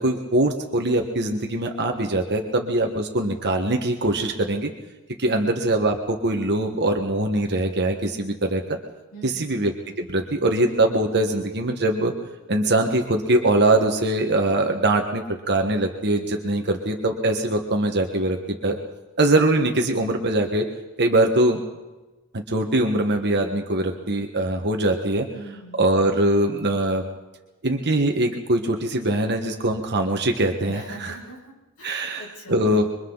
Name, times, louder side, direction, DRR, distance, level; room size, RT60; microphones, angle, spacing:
voice 1, 0.0-4.7 5.2-8.6 9.2-9.7 10.0-12.1 12.5-18.8 19.2-20.6 21.0-21.6 22.3-25.3 25.8-27.0 27.6-31.1 31.8-32.8, right 1 dB, 50° right, 3 dB, 1.5 m, -22 dB
voice 2, 5.2-5.5 9.1-9.5 25.3-25.9 30.6-32.9, right 1 dB, 70° left, -2 dB, 6.3 m, -42 dB
27.0 x 24.0 x 4.1 m, 1.2 s
head